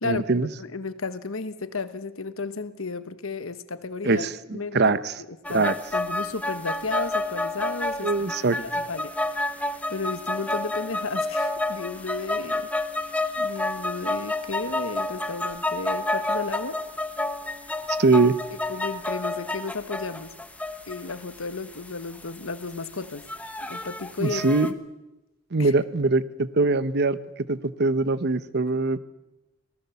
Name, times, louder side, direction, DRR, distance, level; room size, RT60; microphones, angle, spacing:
voice 1, 0.0-0.5 4.0-5.1 5.5-5.7 8.0-8.6 17.9-18.3 24.2-24.7 25.5-27.2 27.5-29.0, right 3 dB, 55° right, 14 dB, 0.9 m, -22 dB
voice 2, 0.6-4.2 4.5-8.1 8.6-9.6 9.9-16.8 18.7-20.3 20.9-23.2 23.7-24.4 25.6-25.7, left 4 dB, 85° left, 12 dB, 1.2 m, -33 dB
sound 1, 5.4-24.7, left 2 dB, 5° left, 1.2 m, -30 dB
26.5 x 18.0 x 7.1 m, 0.98 s
head